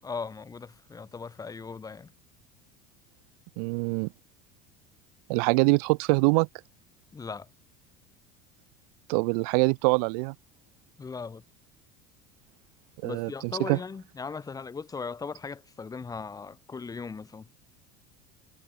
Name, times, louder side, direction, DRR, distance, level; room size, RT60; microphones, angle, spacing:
voice 1, 0.0-2.1 7.1-7.5 11.0-11.4 13.0-17.5, left 5 dB, 20° left, 6.8 m, -38 dB
voice 2, 3.6-4.1 5.3-6.5 9.1-10.3 13.0-13.3 13.7-13.8, right 34 dB, 75° right, 0.6 m, -24 dB
cardioid pair, 135°, 19 cm